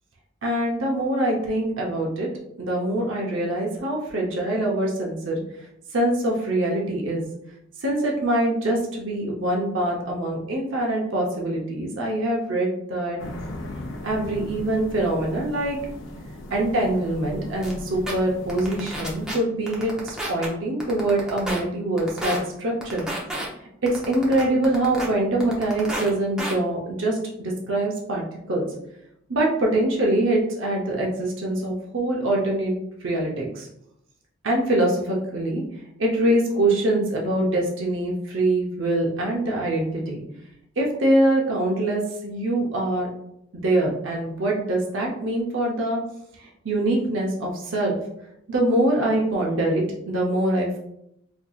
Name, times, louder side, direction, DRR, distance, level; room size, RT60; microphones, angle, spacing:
voice 1, 0.4-2.3 2.6-5.4 5.9-7.3 7.8-13.2 14.0-15.8 16.5-23.1 23.8-28.7 29.3-32.7 33.0-33.7 34.4-35.6 36.0-40.2 40.8-43.1 43.6-46.0 46.4-48.0 48.5-50.8, right 1 dB, 80° right, -2 dB, 0.7 m, -24 dB
sound 1, 13.2-19.3, left 1 dB, 80° left, 0.5 m, -38 dB
sound 2, 17.6-17.7 18.1-18.2 18.5-19.3 19.7-20.5 20.8-21.6 22.0-22.4 22.8-23.5 23.9-25.1 25.4-26.1 26.4-26.5, right 1 dB, 5° right, 0.6 m, -30 dB
4.5 x 2.6 x 2.3 m, 0.78 s
head